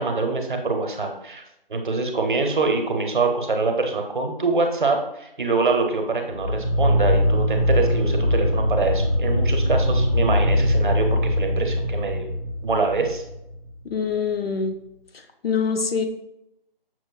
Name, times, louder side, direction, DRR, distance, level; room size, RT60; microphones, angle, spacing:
voice 1, 0.0-1.4 1.7-12.3 12.6-13.2, right 3 dB, 60° right, 4 dB, 0.7 m, -24 dB
sound 1, 6.3-13.6, left 1 dB, 35° left, 0.5 m, -22 dB
voice 2, 13.8-14.8 15.1-16.0, left 5 dB, 80° left, 5 dB, 0.7 m, -25 dB
6.1 x 2.1 x 2.3 m, 0.82 s
figure-of-eight pair, 165°, 29 cm